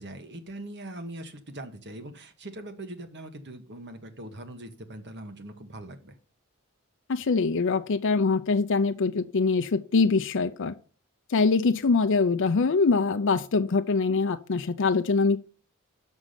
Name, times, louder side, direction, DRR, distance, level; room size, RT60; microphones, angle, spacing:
voice 1, 0.0-6.2, right 1 dB, 55° right, 1.4 m, -41 dB
voice 2, 7.1-10.7 11.3-15.4, left 4 dB, 60° left, 0.5 m, -23 dB
6.5 x 6.2 x 7.4 m
head